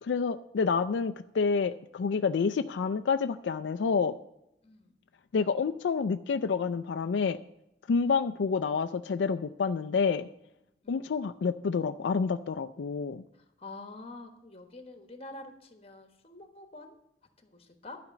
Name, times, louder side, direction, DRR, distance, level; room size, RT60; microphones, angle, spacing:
voice 1, 0.0-4.2 5.3-7.4 7.9-10.3 10.9-13.2, left 5 dB, 85° left, 10 dB, 0.4 m, -28 dB
voice 2, 4.6-4.9 8.0-8.2 10.8-11.1 13.6-17.0 17.4-18.0, left 2 dB, 35° left, 6 dB, 1.3 m, -47 dB
12.0 x 5.0 x 8.4 m, 0.82 s
head